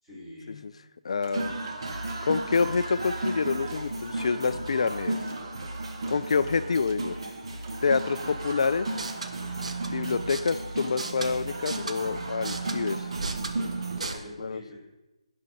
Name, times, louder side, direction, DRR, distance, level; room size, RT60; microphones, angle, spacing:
voice 1, 0.0-0.7 13.9-14.8, left 1 dB, 10° right, -9 dB, 4.7 m, -44 dB
voice 2, 1.0-1.6 2.2-5.2 6.1-7.1 7.8-8.9 9.9-13.1 14.4-14.6, left 5 dB, 60° left, 12 dB, 0.4 m, -27 dB
sound 1, 1.2-3.9 4.4-10.3 10.8-14.0, right 4 dB, 30° right, 1.0 m, -53 dB
sound 2, 1.3-14.2, right 2 dB, 55° right, 1.6 m, -35 dB
sound 3, 8.9-14.1, right 4 dB, 75° right, 1.2 m, -36 dB
18.5 x 6.5 x 4.2 m, 1.1 s
figure-of-eight pair, 160°, 4 cm